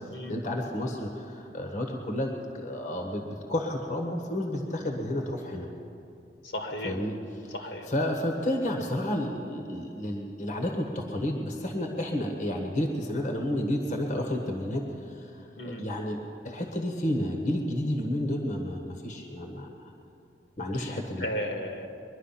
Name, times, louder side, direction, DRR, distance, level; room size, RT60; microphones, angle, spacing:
voice 1, 0.3-5.7 6.8-19.7 20.6-21.3, left 1 dB, 45° left, 2 dB, 1.4 m, -31 dB
voice 2, 6.5-6.9 7.5-7.9 15.6-15.8 20.8-20.9 21.2-21.9, equal, 70° left, 3 dB, 1.8 m, -34 dB
22.5 x 11.0 x 5.8 m, 2.6 s
head